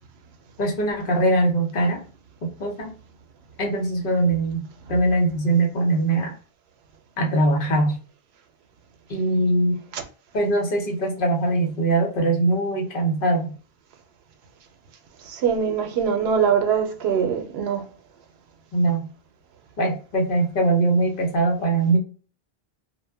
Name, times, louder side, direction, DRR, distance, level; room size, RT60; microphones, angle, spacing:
voice 1, 0.6-2.0 2.6-2.9 3.6-6.3 7.2-8.0 9.1-9.8 10.3-13.5 18.7-19.1 19.8-22.0, right 2 dB, 60° left, 0.9 m, -22 dB
voice 2, 15.3-17.8, right 7 dB, 90° right, 0.8 m, -22 dB
2.1 x 2.1 x 3.3 m
omnidirectional pair, 1.0 m